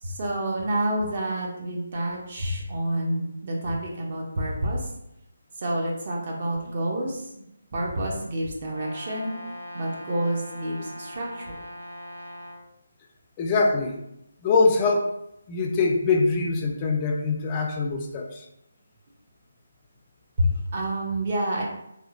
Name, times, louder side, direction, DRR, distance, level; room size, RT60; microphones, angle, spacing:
voice 1, 0.0-4.9 5.6-7.4 7.7-9.4 9.7-11.6 20.4-21.6, right 1 dB, 40° right, -1 dB, 0.6 m, -28 dB
Brass instrument, 8.7-12.7, equal, 85° right, 0.6 m, -40 dB
voice 2, 13.4-14.0 14.4-15.1 15.5-18.5, left 3 dB, 20° left, 1 dB, 0.3 m, -23 dB
2.9 x 2.0 x 2.4 m, 0.81 s
figure-of-eight pair, 160°, 0 cm